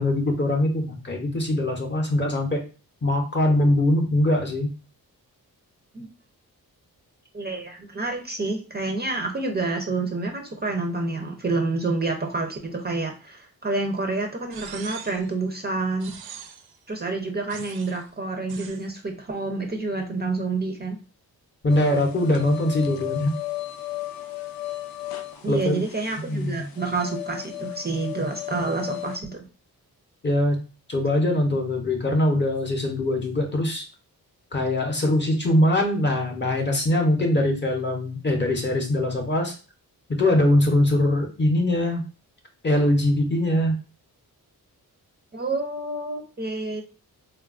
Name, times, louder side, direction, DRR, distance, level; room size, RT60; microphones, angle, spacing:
voice 1, 0.0-2.6 3.0-4.7 21.6-23.3 25.5-25.8 26.3-26.7 30.2-30.6 30.9-33.9 34.5-39.6 40.1-42.0 42.6-43.8, left 1 dB, 30° left, 2 dB, 0.6 m, -22 dB
voice 2, 7.3-16.1 16.9-21.0 25.4-29.5 45.3-46.8, right 3 dB, 30° right, 2 dB, 0.4 m, -28 dB
sound 1, 14.5-15.3 16.0-16.8 17.5-18.0 18.5-18.9, right 7 dB, 80° right, 0.5 m, -41 dB
sound 2, 21.7-29.2, left 15 dB, 75° left, 0.5 m, -35 dB
3.8 x 2.2 x 2.4 m, 0.34 s
wide cardioid pair, 160°, 37 cm